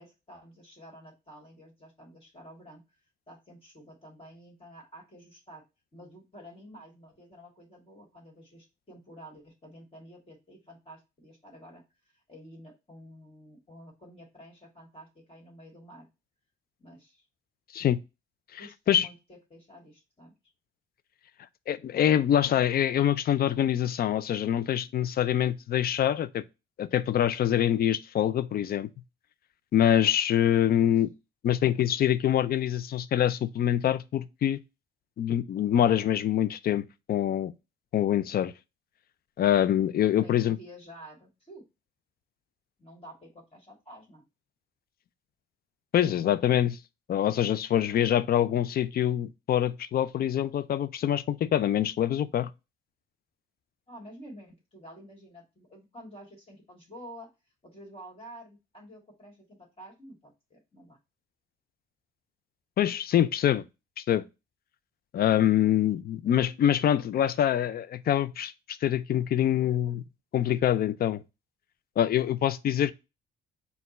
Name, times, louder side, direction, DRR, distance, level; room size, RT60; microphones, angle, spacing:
voice 1, 0.0-2.8 3.3-5.6 5.9-11.8 12.1-16.1 16.8-17.2 18.6-20.3 30.8-31.0 40.0-41.6 42.8-44.2 53.9-57.3 57.6-61.0, equal, 30° left, 1.8 m, -50 dB
voice 2, 21.7-26.4 26.8-28.9 29.7-31.1 31.4-34.6 35.2-37.5 37.9-38.5 39.4-40.6 45.9-46.8 47.1-52.5 62.8-63.6 64.0-64.2 65.1-70.0 70.3-71.2 72.0-72.9, left 10 dB, 50° left, 0.4 m, -25 dB
4.2 x 2.3 x 4.0 m
cardioid pair, 90°, 20 cm